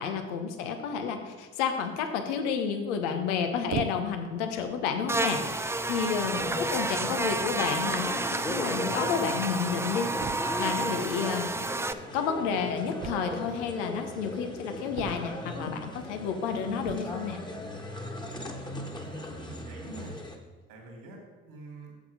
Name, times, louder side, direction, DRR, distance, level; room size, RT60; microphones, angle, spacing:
voice 1, 0.0-11.5 12.1-17.4, left 6 dB, 80° left, 6 dB, 1.0 m, -31 dB
sound 1, 3.7-4.3 5.1-5.2 6.0-6.1 6.4-6.7 7.9-8.0 8.2-8.3 8.5-8.6 10.2-10.7 13.0-13.7 14.9-15.6 16.8-17.2, right 9 dB, 50° right, 0.6 m, -38 dB
Buzz, 5.1-11.9, right 2 dB, 10° right, 0.4 m, -30 dB
sound 2, 6.3-20.4, left 1 dB, 10° left, 1.5 m, -38 dB
voice 2, 6.4-6.8 19.0-20.1 20.7-21.9, right 2 dB, 70° right, 0 dB, 2.5 m, -44 dB
7.6 x 7.5 x 4.9 m, 1.3 s
hypercardioid pair, 50°, 35 cm